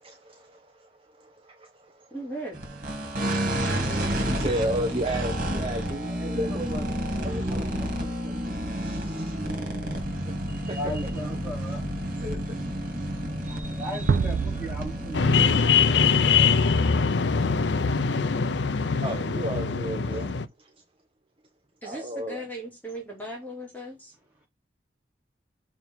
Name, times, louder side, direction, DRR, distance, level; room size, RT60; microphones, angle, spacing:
voice 1, 0.0-2.1 3.0-6.7 7.2-7.7 8.7-9.3 10.7-10.8 14.6-14.7 15.6-15.7 16.0-16.1 19.0-20.7 21.8-22.4, right 1 dB, 30° right, 1.0 m, -34 dB
voice 2, 2.1-2.6 21.8-24.1, right 1 dB, 10° left, 2.5 m, -37 dB
sound 1, 2.5-15.7, equal, 50° right, 2.6 m, -30 dB
voice 3, 6.1-6.9 7.1-9.4 10.5-13.0 13.4-17.6 18.2-18.5, equal, 10° right, 4.3 m, -40 dB
sound 2, 14.1-16.5, right 6 dB, 75° right, 0.3 m, -29 dB
sound 3, 15.1-20.4, left 5 dB, 80° left, 0.6 m, -22 dB
6.8 x 3.6 x 4.6 m
head